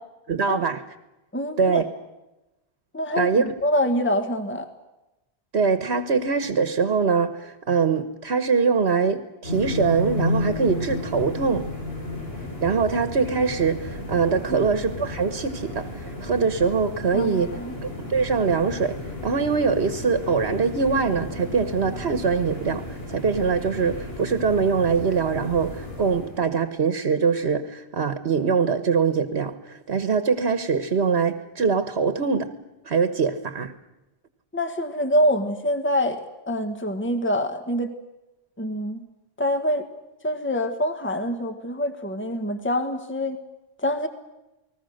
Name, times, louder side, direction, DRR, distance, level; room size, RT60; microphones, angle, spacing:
voice 1, 0.3-0.8 1.6-1.8 3.2-3.4 5.5-11.7 12.6-32.5 32.8-33.7, right 5 dB, 75° right, 10 dB, 1.4 m, -23 dB
voice 2, 1.3-1.8 2.9-4.7 14.5-14.7 17.1-17.7 34.5-36.2 36.5-37.9 38.6-39.0 39.4-39.8 40.2-43.4 43.8-44.1, equal, 10° left, 7 dB, 1.6 m, -25 dB
sound 1, 9.4-26.4, left 2 dB, 65° left, 6.5 m, -33 dB
29.5 x 20.0 x 6.5 m, 0.99 s
omnidirectional pair, 1.1 m